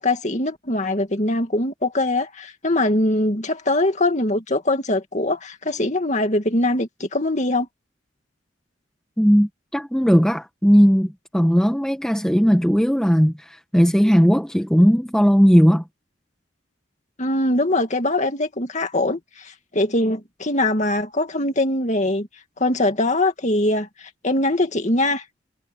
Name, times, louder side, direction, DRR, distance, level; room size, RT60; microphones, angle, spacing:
voice 1, 0.0-7.7 17.2-22.3 22.6-25.2, left 1 dB, 40° left, 2.3 m, -22 dB
voice 2, 9.2-15.8, equal, 5° left, 1.3 m, -17 dB
head